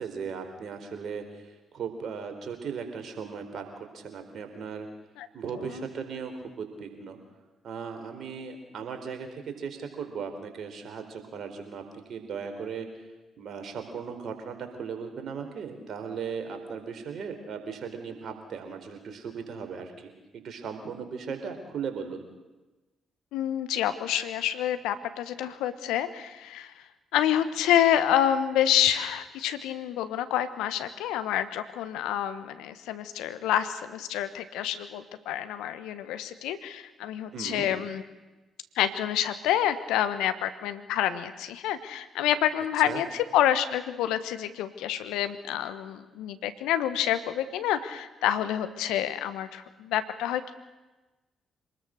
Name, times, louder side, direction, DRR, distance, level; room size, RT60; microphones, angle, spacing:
voice 1, 0.0-3.6 3.9-4.9 5.3-7.2 7.6-11.8 12.1-12.9 13.4-22.3 37.3-37.7 42.8-43.0, right 6 dB, 60° right, 6 dB, 4.3 m, -37 dB
voice 2, 23.3-26.7 27.1-38.0 38.8-50.5, left 11 dB, 75° left, 11 dB, 1.3 m, -28 dB
26.0 x 20.0 x 6.6 m, 1.1 s
hypercardioid pair, 40°, 0 cm